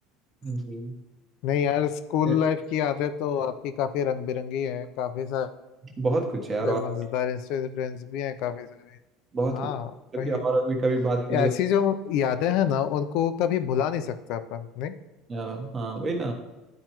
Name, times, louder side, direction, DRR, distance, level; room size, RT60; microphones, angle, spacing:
voice 1, 0.4-0.9 2.2-2.3 6.0-6.8 9.3-9.7 10.1-11.5 15.3-16.3, right 2 dB, 25° right, 2 dB, 1.2 m, -27 dB
voice 2, 1.4-5.5 6.6-9.0 9.5-10.4 11.3-14.9, left 9 dB, 65° left, 10 dB, 0.5 m, -27 dB
12.0 x 4.4 x 3.0 m, 1.1 s
cardioid pair, 135°, 0 cm